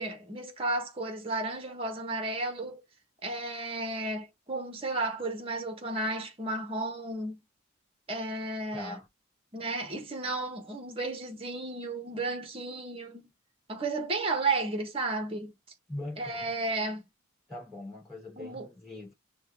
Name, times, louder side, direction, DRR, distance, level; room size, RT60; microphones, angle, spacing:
voice 1, 0.0-2.8 3.2-7.4 8.1-9.0 9.5-13.3 13.7-15.5 16.2-17.0 18.4-18.7, right 2 dB, 25° right, 1.0 m, -33 dB
voice 2, 8.7-9.1 15.9-16.5 17.5-19.1, left 1 dB, ahead, 3.0 m, -41 dB
5.5 x 2.3 x 3.3 m
head